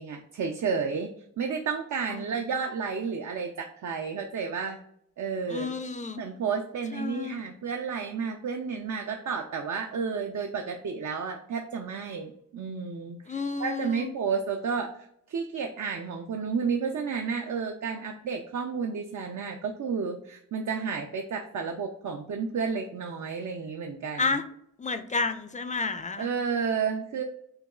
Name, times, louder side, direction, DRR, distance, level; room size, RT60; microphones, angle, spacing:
voice 1, 0.0-4.8 5.2-5.8 6.2-24.4 26.2-27.2, right 5 dB, 70° right, 4 dB, 0.5 m, -31 dB
voice 2, 5.5-6.2 6.9-7.4 13.3-14.1 24.2-24.5 24.8-26.3, left 4 dB, 25° left, 10 dB, 0.4 m, -31 dB
6.4 x 2.3 x 2.4 m, 0.70 s
cardioid pair, 65°, 31 cm